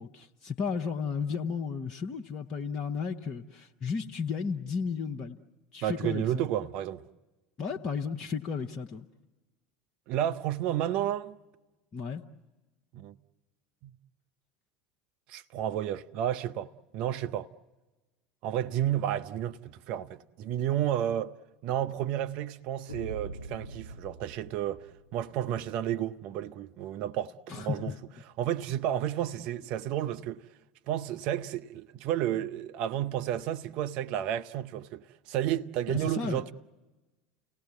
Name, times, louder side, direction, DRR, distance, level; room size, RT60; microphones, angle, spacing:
voice 1, 0.0-5.4 5.7-6.5 7.6-9.1 11.9-12.2 27.5-28.0 35.9-36.4, left 6 dB, 35° left, 0.9 m, -34 dB
voice 2, 5.8-7.0 10.1-11.4 12.9-13.2 13.8-13.9 15.3-17.5 18.4-21.3 21.6-24.8 25.1-27.9 28.4-30.4 30.9-36.5, right 11 dB, 50° right, 0.7 m, -31 dB
sound 1, 22.9-25.5, right 2 dB, 85° left, 0.7 m, -43 dB
30.0 x 18.5 x 8.3 m
figure-of-eight pair, 75°, 2 cm